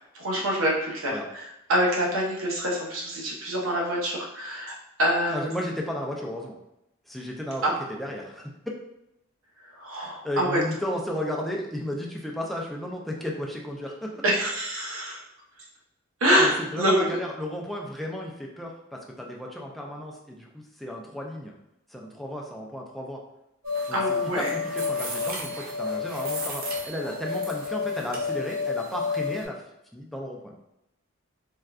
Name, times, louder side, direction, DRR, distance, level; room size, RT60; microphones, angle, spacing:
voice 1, 0.1-5.6 7.6-7.7 9.7-10.6 14.2-15.2 16.2-17.2 23.9-24.6, equal, 80° right, -3 dB, 0.8 m, -26 dB
voice 2, 5.3-6.6 7.1-7.6 7.9-8.5 10.2-14.2 16.4-21.5 21.9-23.2 23.9-29.6 29.9-30.5, equal, ahead, -2 dB, 0.4 m, -34 dB
sound 1, 23.6-29.5, left 4 dB, 45° right, 0.6 m, -30 dB
3.6 x 2.2 x 2.3 m, 0.86 s
head